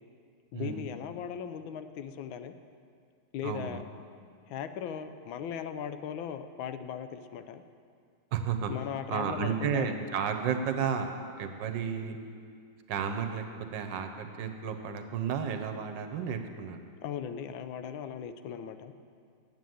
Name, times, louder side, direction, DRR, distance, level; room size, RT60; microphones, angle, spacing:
voice 1, 0.5-2.5 3.3-3.8 4.5-7.6 8.7-9.9 17.0-18.9, left 8 dB, 80° left, 10 dB, 1.3 m, -38 dB
voice 2, 3.4-3.8 8.3-8.7 9.1-11.1 11.4-12.2 12.9-13.4 13.7-16.8, right 7 dB, 70° right, 6 dB, 1.3 m, -32 dB
9.2 x 8.1 x 7.6 m, 2.2 s
omnidirectional pair, 2.2 m